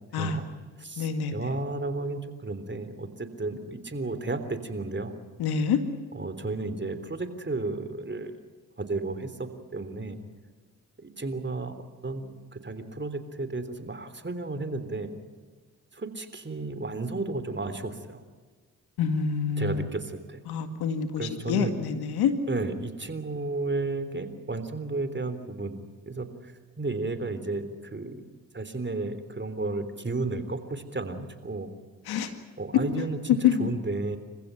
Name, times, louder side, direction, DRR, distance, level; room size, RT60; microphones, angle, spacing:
voice 1, 0.1-0.4 0.8-5.2 6.1-8.3 8.8-10.2 11.0-11.7 12.0-15.1 15.9-18.2 19.6-20.4 21.2-21.7 22.5-26.5 26.8-28.2 28.5-31.7 32.6-34.2, right 3 dB, 30° right, 11 dB, 3.5 m, -33 dB
voice 2, 1.0-1.5 5.4-5.8 19.0-19.9 20.5-22.3 32.1-32.3 33.4-33.7, left 7 dB, 85° left, 8 dB, 2.0 m, -26 dB
28.0 x 15.5 x 9.2 m, 1.4 s
supercardioid pair, 45°, 37 cm